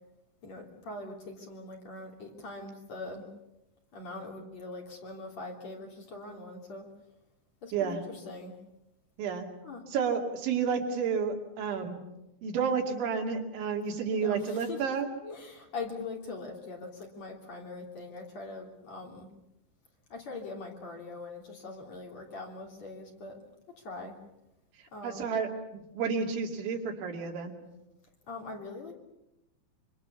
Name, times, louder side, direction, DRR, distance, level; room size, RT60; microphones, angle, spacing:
voice 1, 0.4-3.3 3.9-6.9 7.6-8.6 9.6-9.8 14.1-15.0 15.2-19.3 20.1-23.4 23.8-24.2 24.9-25.4 28.3-28.9, left 3 dB, 40° left, 0 dB, 3.9 m, -42 dB
voice 2, 7.7-8.0 9.2-9.5 9.9-12.0 12.4-15.1 25.0-25.5 25.9-27.6, right 6 dB, 80° right, 2 dB, 5.0 m, -30 dB
26.0 x 25.5 x 7.0 m, 0.91 s
omnidirectional pair, 5.2 m